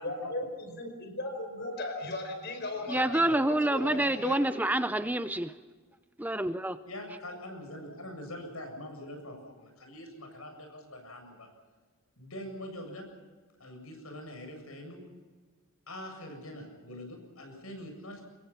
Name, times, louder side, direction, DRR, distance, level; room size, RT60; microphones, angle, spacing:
voice 1, 0.0-4.4, left 2 dB, 50° left, 6 dB, 5.2 m, -37 dB
voice 2, 2.9-5.5 6.2-6.8, right 1 dB, 10° right, 11 dB, 0.6 m, -27 dB
voice 3, 6.8-11.5 12.2-13.1 13.6-15.0 15.9-18.2, left 1 dB, 80° left, 4 dB, 7.7 m, -43 dB
26.0 x 21.5 x 5.8 m, 1.4 s
head